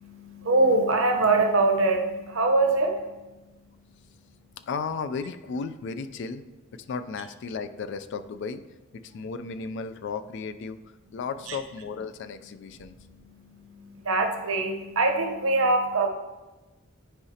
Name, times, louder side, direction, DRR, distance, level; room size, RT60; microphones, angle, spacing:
voice 1, 0.0-3.3 11.5-11.6 12.7-16.1, right 2 dB, 75° right, 3 dB, 0.9 m, -24 dB
voice 2, 4.7-6.4 6.7-8.6 9.0-10.8 11.1-13.0, left 5 dB, 60° left, 11 dB, 0.3 m, -34 dB
10.0 x 4.8 x 2.8 m, 1.1 s
head